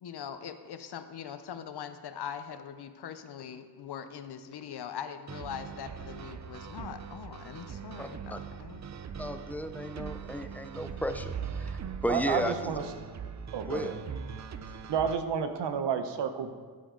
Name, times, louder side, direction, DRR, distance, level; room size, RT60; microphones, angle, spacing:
voice 1, 0.0-8.8, left 8 dB, 70° left, 10 dB, 0.8 m, -42 dB
sound 1, 5.3-15.2, right 7 dB, 45° right, 0.6 m, -41 dB
voice 2, 8.0-8.4 9.2-12.5 13.7-13.9, left 1 dB, 5° left, 9 dB, 0.6 m, -34 dB
voice 3, 12.1-12.8 13.5-13.9 14.9-16.5, right 7 dB, 85° right, 9 dB, 0.9 m, -30 dB
11.0 x 8.2 x 3.8 m, 1.5 s
cardioid pair, 75°, 41 cm